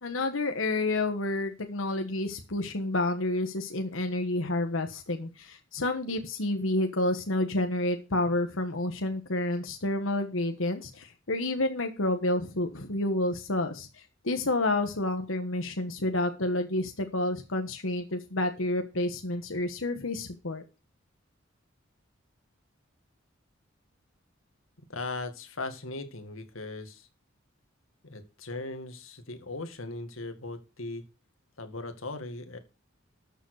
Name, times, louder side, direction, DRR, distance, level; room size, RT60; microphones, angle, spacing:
voice 1, 0.0-20.6, left 2 dB, 75° left, 6 dB, 1.4 m, -29 dB
voice 2, 24.9-27.1 28.0-31.0 31.6-32.6, left 2 dB, 90° left, 8 dB, 2.1 m, -38 dB
13.0 x 7.2 x 4.9 m, 0.30 s
head